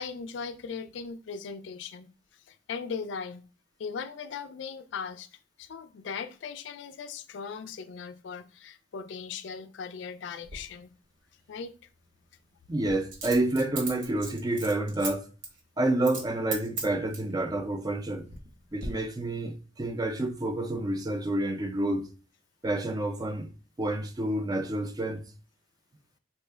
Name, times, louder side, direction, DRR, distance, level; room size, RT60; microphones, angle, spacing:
voice 1, 0.0-2.1 2.5-3.4 3.8-5.3 5.6-10.9 11.5-11.7, left 5 dB, 70° left, 0.4 m, -38 dB
Coin (dropping), 10.5-10.6 13.1-15.1 15.4-15.6 16.0-16.3 16.5-17.3 17.9-18.5 18.8-18.9, right 4 dB, 80° right, 1.1 m, -37 dB
voice 2, 12.7-15.3 15.8-18.3 18.7-22.1 22.6-23.5 23.8-25.2, right 1 dB, 20° right, 0.4 m, -29 dB
4.3 x 2.1 x 3.3 m
head